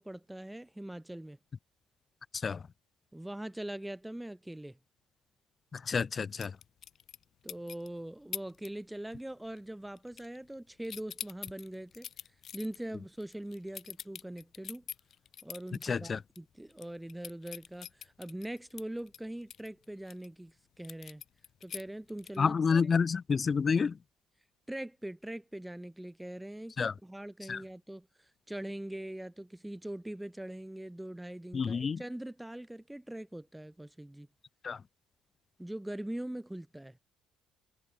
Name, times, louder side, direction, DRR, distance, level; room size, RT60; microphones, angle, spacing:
voice 1, 0.0-1.4 3.1-4.8 7.4-12.1 12.5-14.8 15.4-21.2 21.6-22.9 24.7-34.3 35.6-37.0, right 1 dB, 5° right, 2.5 m, -42 dB
voice 2, 5.9-6.5 15.9-16.2 22.4-23.9 26.8-26.9 27.5-27.6 31.5-32.0 34.6-34.8, left 5 dB, 35° left, 0.3 m, -28 dB
sound 1, 6.4-7.2 7.5-7.9 8.3-8.7 9.0-9.3 9.6-10.6 10.8-15.9 16.3-16.4 16.7-20.3 20.8-22.5, left 9 dB, 55° left, 0.8 m, -44 dB
cardioid pair, 95°, 0 cm